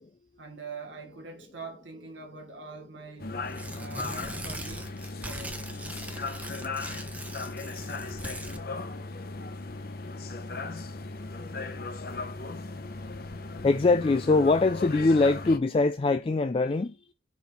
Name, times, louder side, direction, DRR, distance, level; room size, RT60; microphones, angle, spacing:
voice 1, 0.4-3.4 3.8-4.9 5.2-5.6, right 4 dB, 85° right, 1.1 m, -44 dB
sound 1, 3.2-15.6, left 3 dB, 55° left, 0.7 m, -37 dB
Tearing, 3.5-8.6, right 1 dB, 10° right, 0.7 m, -41 dB
voice 2, 13.6-16.9, left 3 dB, 30° left, 0.3 m, -23 dB
5.2 x 4.4 x 4.5 m
head